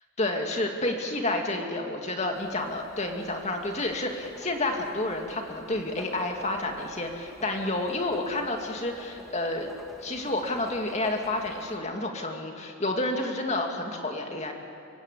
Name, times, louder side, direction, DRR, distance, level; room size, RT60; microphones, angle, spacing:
voice 1, 0.2-9.7 10.0-14.5, left 2 dB, 30° left, 3 dB, 2.3 m, -30 dB
Writing, 2.3-11.8, equal, ahead, 2.3 m, -49 dB
25.5 x 16.0 x 8.5 m, 2.7 s
head